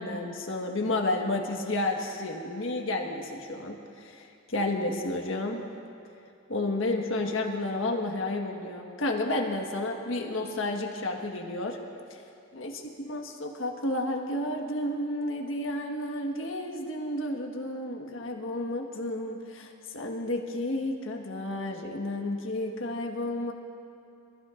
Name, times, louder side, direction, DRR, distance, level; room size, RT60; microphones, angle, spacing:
voice 1, 0.0-5.6 6.5-11.8 12.5-12.7 13.0-23.5, left 2 dB, 80° left, 1 dB, 1.5 m, -31 dB
24.5 x 14.5 x 2.6 m, 2.5 s
head